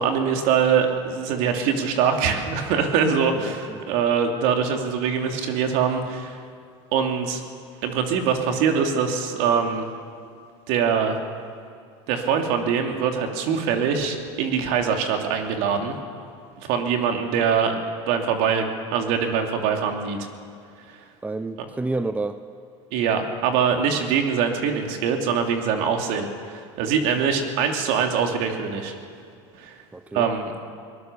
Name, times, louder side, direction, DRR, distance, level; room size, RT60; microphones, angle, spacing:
voice 1, 0.0-6.4 6.9-7.4 7.8-9.8 10.7-11.2 12.1-15.9 16.6-17.8 18.1-20.3 22.9-28.9 29.5-29.7 30.1-30.7, right 6 dB, 65° right, 4 dB, 2.9 m, -23 dB
voice 2, 3.4-3.9 21.2-22.4 27.3-27.5 29.9-30.3, right 2 dB, 10° right, 12 dB, 0.7 m, -30 dB
22.5 x 19.5 x 6.9 m, 2.3 s
supercardioid pair, 105°, 15 cm